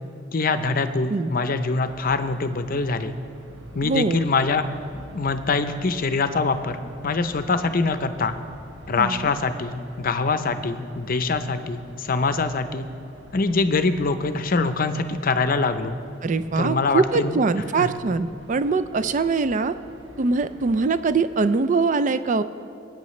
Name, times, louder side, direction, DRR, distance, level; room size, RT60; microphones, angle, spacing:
voice 1, 0.3-3.1 3.7-4.7 5.0-6.8 7.0-8.3 8.9-12.8 13.3-15.9 16.6-17.4 17.8-17.9, left 4 dB, 50° left, 10 dB, 0.6 m, -24 dB
sound 1, 1.8-21.1, equal, 70° right, 1.4 m, -47 dB
voice 2, 3.8-4.2 8.9-9.3 16.2-19.8 20.2-22.4, right 4 dB, 40° right, 12 dB, 0.4 m, -22 dB
24.0 x 8.8 x 3.1 m, 2.5 s
head